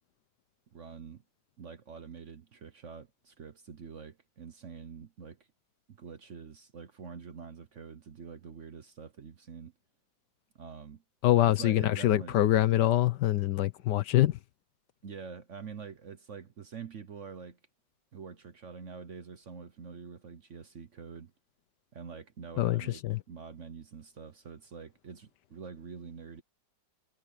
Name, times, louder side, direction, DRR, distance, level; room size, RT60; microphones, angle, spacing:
voice 1, 0.7-1.2 1.6-5.4 5.9-9.7 10.6-11.0 11.4-12.4 15.0-17.6 18.1-21.3 21.9-23.0 23.3-26.4, right 6 dB, 50° right, 1.0 m, -46 dB
voice 2, 11.2-14.4 22.6-23.2, left 14 dB, 70° left, 1.2 m, -25 dB
omnidirectional pair, 2.0 m